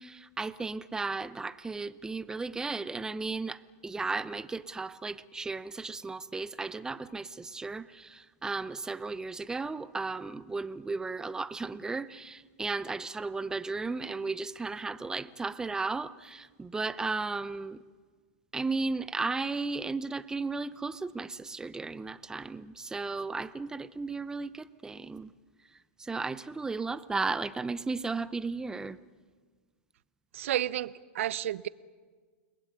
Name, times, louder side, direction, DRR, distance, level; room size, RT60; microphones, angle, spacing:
voice 1, 0.0-17.8 18.5-25.3 26.0-29.0, right 3 dB, 10° right, 0.8 m, -35 dB
voice 2, 30.3-31.7, right 12 dB, 70° right, 0.9 m, -31 dB
29.5 x 20.5 x 9.4 m
hypercardioid pair, 135°, 7 cm